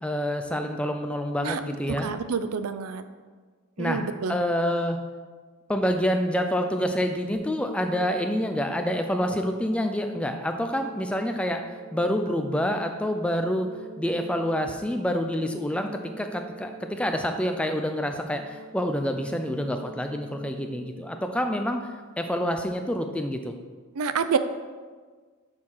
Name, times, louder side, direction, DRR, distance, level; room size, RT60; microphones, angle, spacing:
voice 1, 0.0-2.1 3.8-4.0 4.3-5.0 5.7-11.6 11.9-13.7 14.0-15.9 16.2-21.9 22.2-23.5, equal, 5° left, 5 dB, 0.4 m, -27 dB
voice 2, 1.9-3.0 3.8-4.4 24.0-24.4, right 6 dB, 85° right, 11 dB, 0.5 m, -28 dB
sound 1, 7.3-22.3, right 1 dB, 20° right, 1.3 m, -46 dB
6.6 x 4.6 x 5.5 m, 1.5 s
head